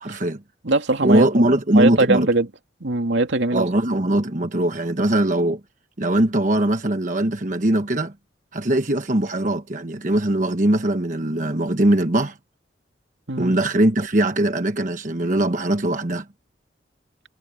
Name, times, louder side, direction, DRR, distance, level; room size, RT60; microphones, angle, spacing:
voice 1, 0.0-0.4 1.0-2.3 3.5-5.6 6.0-8.1 8.5-12.4 13.4-16.3, right 1 dB, 45° right, 1.2 m, -21 dB
voice 2, 0.6-1.5 1.7-2.5 2.8-3.7 13.3-13.5, right 2 dB, 80° right, 2.4 m, -21 dB
head